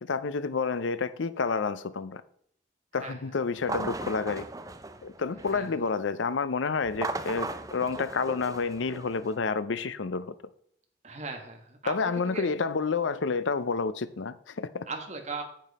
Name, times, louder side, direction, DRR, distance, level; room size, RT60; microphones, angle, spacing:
voice 1, 0.0-2.2 2.9-4.5 5.0-10.3 11.8-14.9, left 4 dB, 80° left, 0.6 m, -29 dB
sound 1, 3.6-5.8 6.8-9.4, right 3 dB, 20° right, 0.5 m, -37 dB
voice 2, 11.0-12.5 14.9-15.4, right 3 dB, 35° right, 1.5 m, -38 dB
9.2 x 7.5 x 4.1 m
head